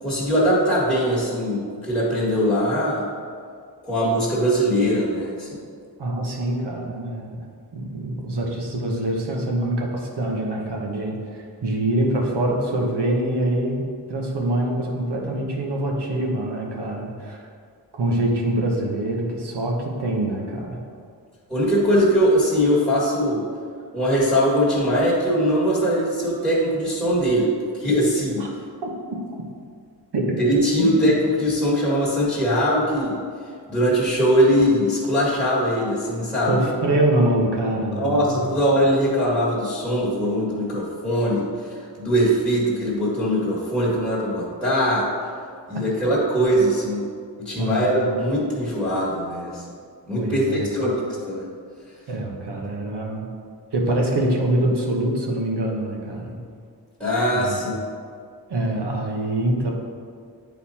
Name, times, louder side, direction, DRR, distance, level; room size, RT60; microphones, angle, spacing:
voice 1, 0.0-3.1 3.8-5.6 21.5-23.4 23.9-28.5 30.4-33.2 33.7-36.7 37.9-45.1 45.7-47.1 47.4-49.6 50.1-51.5 57.0-57.7, equal, 5° left, -9 dB, 1.7 m, -21 dB
voice 2, 6.0-7.4 7.7-17.4 17.9-20.8 28.4-28.5 28.8-28.9 30.1-30.3 30.8-31.1 36.5-38.4 47.6-47.9 50.2-51.0 52.1-53.3 53.7-56.4 57.3-57.7 58.5-59.7, right 1 dB, 70° right, -1 dB, 1.3 m, -24 dB
10.0 x 4.1 x 4.3 m, 2.2 s
wide cardioid pair, 135°, 43 cm